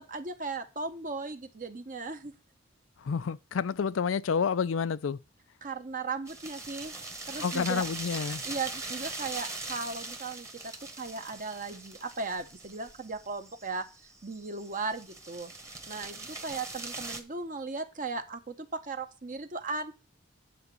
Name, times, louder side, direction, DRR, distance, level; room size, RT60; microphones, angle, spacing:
voice 1, 0.1-2.3 5.6-7.0 7.3-7.8 8.4-13.8 14.2-15.5 15.9-19.9, right 3 dB, 45° right, 1.1 m, -37 dB
voice 2, 3.0-5.2 7.4-8.4, left 6 dB, 90° left, 0.4 m, -29 dB
sound 1, 6.3-17.2, right 2 dB, 15° right, 1.3 m, -41 dB
9.6 x 4.0 x 6.8 m
head